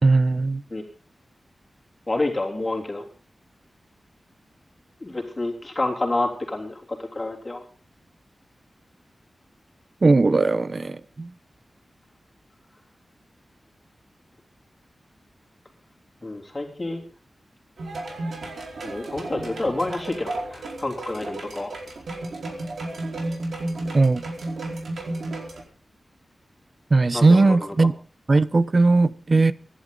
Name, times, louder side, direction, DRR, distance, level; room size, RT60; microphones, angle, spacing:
voice 1, 0.0-0.6 10.0-11.3 23.9-24.2 26.9-27.9 28.3-29.5, right 3 dB, 40° right, 0.8 m, -18 dB
voice 2, 2.1-3.1 5.0-7.6 16.2-17.0 18.8-21.7 27.1-27.9, left 2 dB, 25° left, 3.5 m, -28 dB
sound 1, 17.8-25.6, right 2 dB, 80° right, 4.7 m, -33 dB
24.5 x 11.5 x 3.9 m
wide cardioid pair, 115°, 0 cm